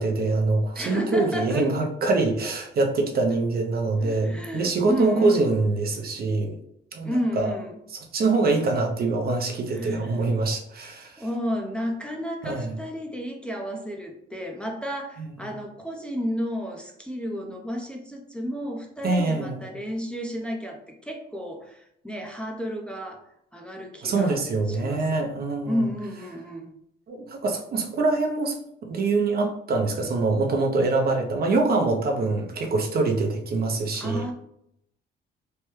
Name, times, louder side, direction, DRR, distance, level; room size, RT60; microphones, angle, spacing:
voice 1, 0.0-6.5 6.9-7.5 8.1-11.1 12.4-12.7 19.0-19.6 24.0-25.8 27.1-28.6 28.8-34.2, right 3 dB, 50° right, 2 dB, 0.6 m, -24 dB
voice 2, 0.7-1.7 4.0-5.5 7.0-7.8 9.7-10.2 11.2-23.2 23.5-24.4 24.7-25.2 25.7-26.7 33.9-34.3, equal, 5° left, 1 dB, 0.5 m, -32 dB
3.2 x 2.2 x 3.0 m, 0.74 s
cardioid pair, 90°, 20 cm